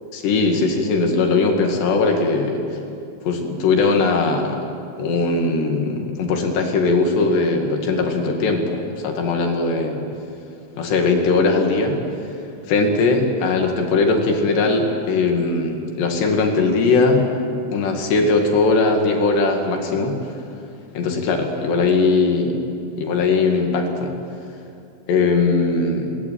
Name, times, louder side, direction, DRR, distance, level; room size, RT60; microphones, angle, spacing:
voice 1, 0.1-2.8 3.2-4.6 5.0-10.0 10.8-12.0 12.7-17.3 17.7-20.2 21.0-22.6 23.0-24.1 25.1-26.2, left 3 dB, 65° left, 2 dB, 4.1 m, -19 dB
21.5 x 19.0 x 9.2 m, 2.5 s
omnidirectional pair, 5.5 m